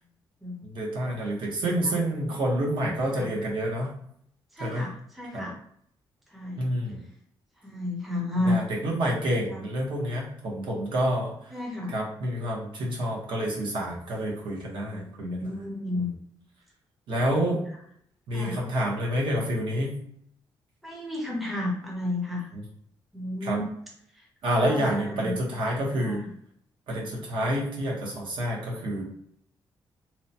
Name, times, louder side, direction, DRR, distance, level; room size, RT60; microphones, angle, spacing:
voice 1, 0.6-3.9 4.6-4.9 5.3-5.5 6.6-7.0 8.4-11.5 11.9-15.5 15.9-16.1 17.1-17.6 18.3-20.0 22.5-22.6 23.4-23.6 24.4-26.2 26.9-29.0, equal, 70° right, -2 dB, 0.9 m, -28 dB
voice 2, 4.5-5.6 6.3-6.6 6.9-7.0 7.6-8.6 9.5-9.6 11.5-11.9 14.9-16.1 17.3-17.6 18.3-18.6 20.8-22.5 23.1-23.6 24.1-24.2 24.6-25.3 26.0-26.3, left 1 dB, ahead, -2 dB, 0.5 m, -32 dB
2.8 x 2.1 x 2.7 m, 0.68 s
wide cardioid pair, 180°, 9 cm